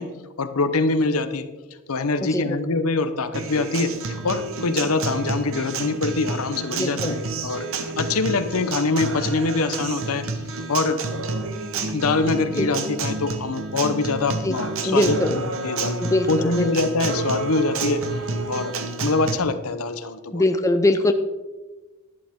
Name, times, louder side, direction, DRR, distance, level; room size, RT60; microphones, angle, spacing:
voice 1, 0.0-1.5 1.9-10.3 10.7-11.0 11.9-16.0 16.3-18.0 18.5-20.5, left 3 dB, 75° left, 11 dB, 0.8 m, -24 dB
Acoustic guitar, 3.3-19.3, right 3 dB, 65° right, 1.0 m, -29 dB
voice 2, 6.7-7.1 12.6-12.7 14.4-14.6 14.8-15.4 16.0-16.7 20.3-21.1, left 2 dB, 15° left, 7 dB, 0.5 m, -22 dB
11.5 x 11.0 x 3.6 m, 1.2 s
head